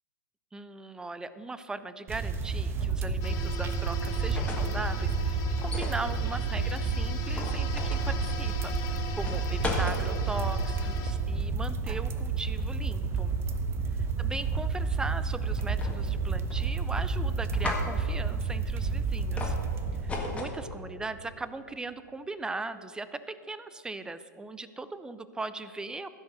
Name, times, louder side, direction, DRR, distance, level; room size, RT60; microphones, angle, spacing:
voice 1, 0.5-13.3 14.2-19.5 20.0-26.1, right 3 dB, 5° right, 14 dB, 0.4 m, -39 dB
sound 1, 2.1-20.4, right 4 dB, 25° right, 0.8 m, -30 dB
sound 2, 3.2-11.1, left 4 dB, 40° left, 1.5 m, -41 dB
sound 3, 4.2-4.8 5.6-6.0 7.4-8.1 9.2-10.0 15.6-16.2 16.5-17.0 17.5-17.9 19.4-19.6 20.1-20.6, left 3 dB, 10° left, 1.8 m, -35 dB
15.5 x 5.2 x 6.7 m, 2.3 s
figure-of-eight pair, 105°, 10 cm